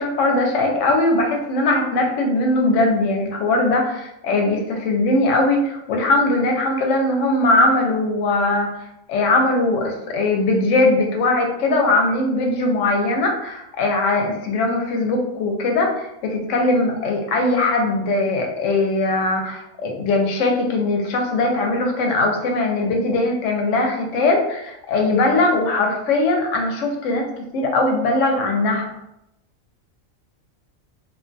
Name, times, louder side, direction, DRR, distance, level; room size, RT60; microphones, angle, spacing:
voice 1, 0.0-8.7 9.1-28.9, left 2 dB, 70° left, 2 dB, 0.9 m, -20 dB
2.4 x 2.3 x 2.5 m, 0.84 s
omnidirectional pair, 1.4 m